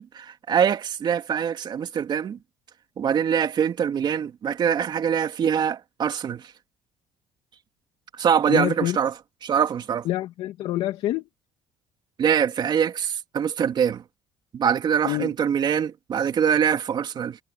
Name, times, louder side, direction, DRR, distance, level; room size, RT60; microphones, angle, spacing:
voice 1, 0.0-2.4 3.0-6.4 8.2-9.1 9.4-10.0 12.2-14.0 14.5-17.4, right 8 dB, 50° right, 2.7 m, -23 dB
voice 2, 8.5-9.0 10.0-11.3 15.0-15.3, left 15 dB, 70° left, 2.4 m, -26 dB
supercardioid pair, 90°, 10 cm